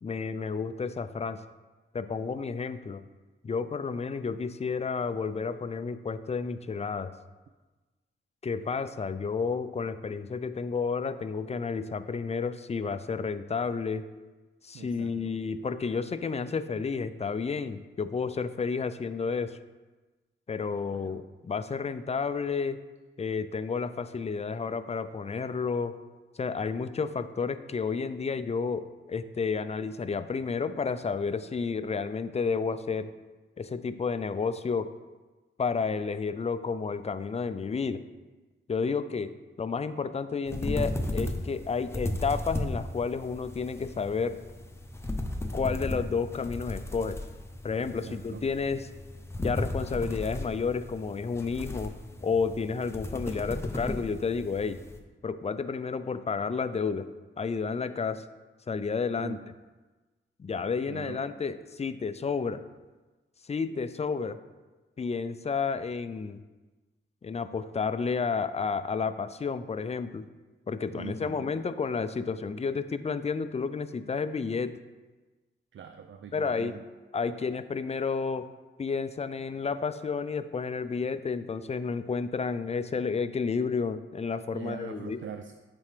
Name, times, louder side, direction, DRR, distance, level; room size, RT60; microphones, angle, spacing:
voice 1, 0.0-1.4 1.9-3.1 3.4-7.1 8.4-14.1 14.6-19.6 20.5-22.8 23.2-26.0 26.4-33.1 33.6-34.9 35.6-38.0 38.7-39.3 39.6-44.4 45.5-47.2 47.6-48.9 49.4-51.9 52.2-54.8 55.2-57.1 57.4-58.2 58.7-59.4 60.4-62.6 63.5-64.4 65.0-66.4 67.2-70.3 70.7-74.7 76.3-76.8 77.1-78.5 78.8-85.2, left 5 dB, 30° left, 12 dB, 0.4 m, -31 dB
voice 2, 14.7-15.4 20.9-21.2 47.8-48.4 59.2-59.4 60.9-61.2 71.0-71.5 75.7-76.8 84.5-85.5, right 7 dB, 70° right, 7 dB, 0.4 m, -43 dB
sound 1, 40.5-55.0, left 1 dB, 10° left, 0.8 m, -35 dB
9.4 x 4.3 x 3.3 m, 1.2 s
cardioid pair, 65°, 21 cm